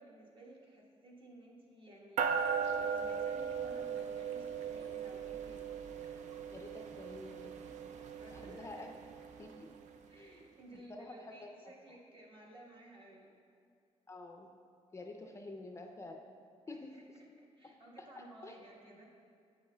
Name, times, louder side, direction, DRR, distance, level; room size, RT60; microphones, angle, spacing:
voice 1, 0.0-2.4 2.7-5.7 8.2-8.9 10.1-13.3 16.7-19.0, right 1 dB, 45° right, -3 dB, 1.3 m, -56 dB
sound 1, 2.2-9.9, right 6 dB, 75° right, 0.4 m, -38 dB
voice 2, 6.5-7.5 8.3-8.9 9.4-9.7 10.1-10.3 10.7-11.7 14.1-14.5 14.9-16.2 16.7-17.0 17.6-18.5, left 2 dB, 25° left, 3 dB, 0.4 m, -49 dB
7.9 x 7.8 x 2.2 m, 2.3 s
cardioid pair, 115°, 12 cm